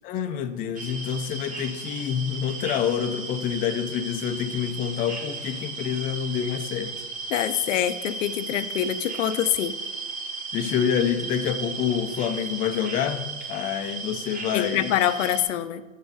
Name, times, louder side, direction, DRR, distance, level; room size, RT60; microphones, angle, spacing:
voice 1, 0.0-6.9 10.5-14.9, left 8 dB, 25° left, 9 dB, 0.4 m, -27 dB
sound 1, 0.7-15.4, right 4 dB, 20° right, 1.3 m, -35 dB
voice 2, 7.3-9.7 14.5-15.8, left 11 dB, 75° left, 14 dB, 0.5 m, -25 dB
7.0 x 4.0 x 5.2 m, 1.2 s
hypercardioid pair, 110°, 39 cm